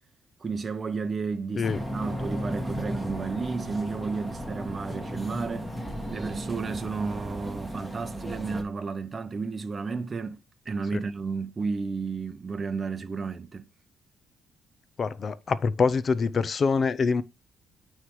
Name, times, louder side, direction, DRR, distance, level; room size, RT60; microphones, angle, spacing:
voice 1, 0.4-5.7 6.1-13.7, right 4 dB, 35° right, 0.6 m, -32 dB
sound 1, 1.6-8.6, equal, ahead, 1.5 m, -35 dB
voice 2, 15.0-17.2, left 5 dB, 45° left, 0.6 m, -25 dB
9.4 x 3.2 x 4.7 m
cardioid pair, 90°, 0 cm